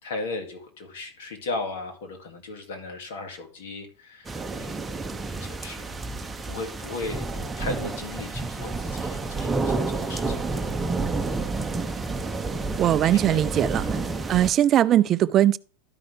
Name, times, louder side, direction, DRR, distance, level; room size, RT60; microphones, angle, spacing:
voice 1, 0.0-4.9 5.4-5.9 6.5-10.7 13.1-13.4 13.9-14.0, left 3 dB, 70° left, 2.4 m, -36 dB
sound 1, 4.2-14.5, right 3 dB, 15° right, 0.8 m, -30 dB
voice 2, 12.8-13.9 14.3-15.6, right 11 dB, 35° right, 0.3 m, -20 dB
12.5 x 5.5 x 3.4 m
hypercardioid pair, 110°, 0 cm